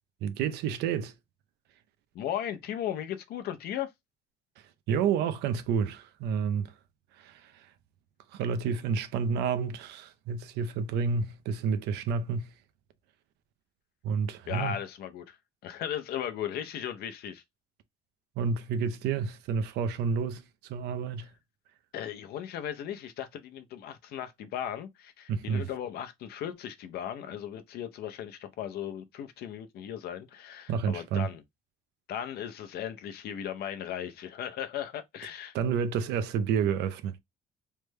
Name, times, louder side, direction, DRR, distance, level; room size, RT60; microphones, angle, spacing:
voice 1, 0.2-1.1 4.9-6.7 7.2-7.7 8.3-12.5 14.0-14.8 18.4-20.4 20.7-21.3 25.3-25.7 30.7-31.3 35.5-37.2, right 6 dB, 85° right, 0.5 m, -30 dB
voice 2, 2.1-3.9 14.5-15.4 15.6-17.4 21.9-31.4 32.1-35.5, left 10 dB, 70° left, 0.6 m, -37 dB
3.3 x 2.1 x 3.2 m
cardioid pair, 110°, 17 cm